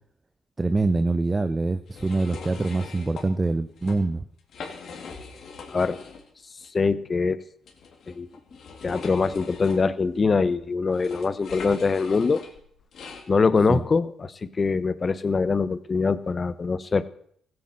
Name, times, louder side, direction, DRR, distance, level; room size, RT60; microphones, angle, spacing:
voice 1, 0.6-4.2 13.7-13.8, right 3 dB, 25° right, 11 dB, 0.9 m, -25 dB
sound 1, 1.9-3.3 3.7-4.0 4.4-6.3 6.6-6.7 7.6-13.3, left 5 dB, 65° left, 3.6 m, -41 dB
voice 2, 6.7-7.4 8.1-8.3 8.8-12.4 13.3-17.0, left 4 dB, 35° left, 15 dB, 1.1 m, -23 dB
15.5 x 9.8 x 7.7 m, 0.64 s
supercardioid pair, 70°, 0 cm